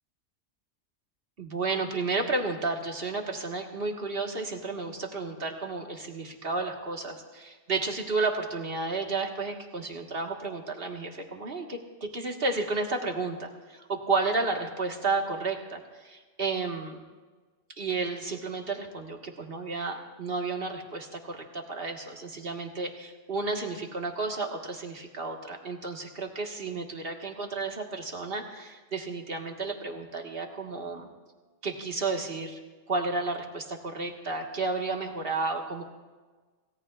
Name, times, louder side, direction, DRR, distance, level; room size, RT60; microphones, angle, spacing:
voice 1, 1.4-17.0 17.8-31.1 31.6-32.6 32.9-35.8, right 3 dB, 55° right, 2 dB, 1.8 m, -32 dB
27.5 x 18.0 x 2.4 m, 1.4 s
omnidirectional pair, 1.2 m